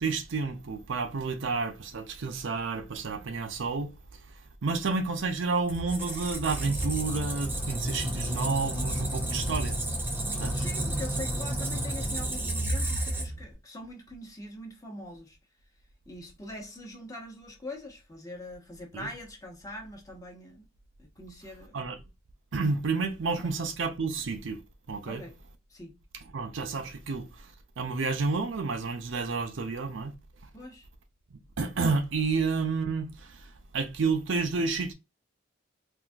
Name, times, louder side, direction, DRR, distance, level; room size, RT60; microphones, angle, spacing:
voice 1, 0.0-3.9 4.6-9.8 10.4-10.6 18.9-19.1 21.7-22.0 22.5-24.6 24.9-25.2 26.3-27.3 27.8-30.1 31.6-33.1 33.7-34.9, right 4 dB, 70° right, 0.6 m, -30 dB
Squeak, 5.7-13.5, right 1 dB, 10° right, 0.6 m, -31 dB
voice 2, 10.2-15.4 16.1-20.7 21.0-21.8 23.4-23.5 25.0-25.4 25.7-25.9 30.5-30.9, left 1 dB, 20° left, 0.9 m, -43 dB
3.9 x 2.6 x 2.3 m
head